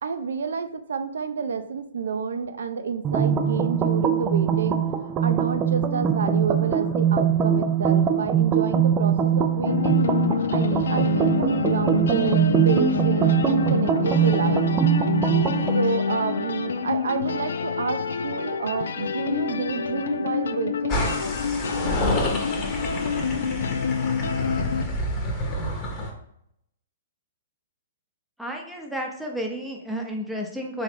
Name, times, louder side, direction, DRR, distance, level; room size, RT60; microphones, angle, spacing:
voice 1, 0.0-4.9 5.2-10.0 10.5-14.7 15.7-21.1, right 5 dB, 80° right, 9 dB, 0.5 m, -29 dB
sound 1, 3.0-15.8, right 8 dB, 25° right, 0.3 m, -22 dB
sound 2, 9.7-24.8, left 6 dB, 80° left, 0.3 m, -27 dB
sound 3, 20.9-26.1, left 1 dB, 30° left, 1.0 m, -28 dB
voice 2, 28.4-30.8, equal, ahead, 0 dB, 0.8 m, -31 dB
3.8 x 3.1 x 3.4 m, 0.75 s
hypercardioid pair, 135°, 0 cm